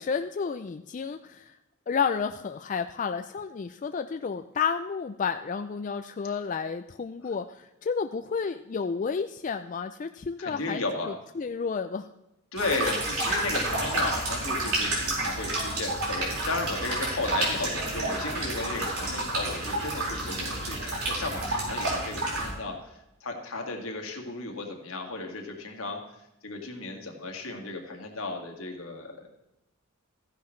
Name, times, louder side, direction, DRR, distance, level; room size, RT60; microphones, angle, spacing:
voice 1, 0.0-1.6 1.9-12.1, left 5 dB, 35° left, 8 dB, 0.3 m, -31 dB
voice 2, 10.4-11.2 12.5-26.0 26.4-29.3, left 3 dB, 75° left, 2 dB, 1.9 m, -34 dB
sound 1, 12.6-22.5, right 2 dB, 85° right, 4.5 m, -30 dB
14.5 x 10.5 x 3.2 m, 0.93 s
head